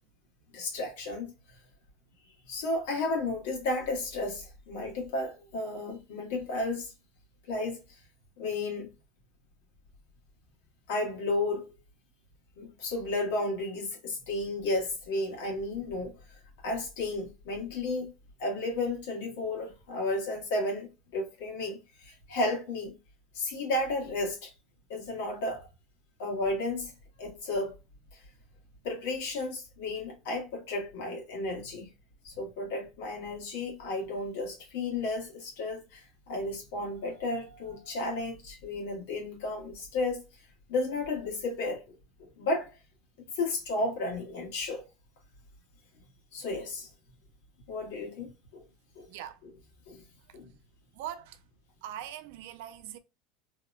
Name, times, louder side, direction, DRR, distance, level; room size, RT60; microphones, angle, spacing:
voice 1, 0.5-1.3 2.5-6.9 7.5-8.0 8.4-8.9 10.9-11.7 12.6-18.1 18.4-22.9 23.3-24.5 24.9-25.7 26.2-26.9 27.2-27.7 28.1-28.2 28.8-31.9 32.2-40.2 40.7-42.7 43.3-44.8 46.3-46.9 47.7-48.6 48.9-49.1 49.9-50.0 50.3-50.5, left 2 dB, 80° left, 1.2 m, -33 dB
voice 2, 49.1-49.4 50.3-50.4 50.9-51.4 51.8-53.0, right 11 dB, 70° right, 0.4 m, -41 dB
2.8 x 2.1 x 2.3 m
cardioid pair, 170°, 0 cm